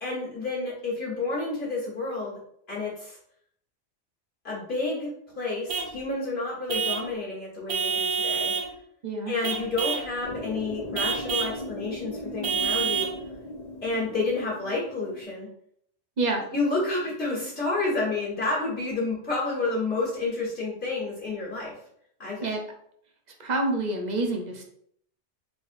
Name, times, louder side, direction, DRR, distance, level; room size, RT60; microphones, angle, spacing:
voice 1, 0.0-2.4 2.7-3.2 4.4-5.1 5.4-8.5 9.3-13.1 13.8-15.5 16.5-21.7 22.2-22.5, left 3 dB, 60° left, -6 dB, 1.7 m, -30 dB
Vehicle horn car horn honking / Truck, 5.7-6.0 6.7-7.1 7.7-8.7 9.4-10.1 10.9-11.6 12.4-13.2, right 6 dB, 80° right, 1.1 m, -27 dB
voice 2, 9.0-9.3 16.2-16.4 22.4-22.6 23.4-24.6, right 2 dB, 45° right, 3 dB, 0.6 m, -27 dB
sound 1, 10.2-15.2, left 1 dB, 40° left, 0.7 m, -38 dB
4.0 x 3.6 x 2.5 m, 0.68 s
omnidirectional pair, 1.2 m